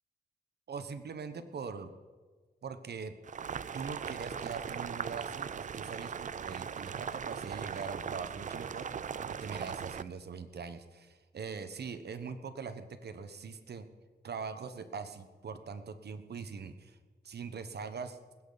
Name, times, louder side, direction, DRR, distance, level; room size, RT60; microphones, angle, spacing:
voice 1, 0.7-1.9 2.6-3.2 3.7-13.8 14.2-17.0 17.2-18.2, right 5 dB, 70° right, 10 dB, 1.2 m, -42 dB
Boiling, 3.2-10.0, right 7 dB, 45° right, 0.4 m, -39 dB
20.0 x 16.5 x 4.1 m, 1.4 s
wide cardioid pair, 105°, 17 cm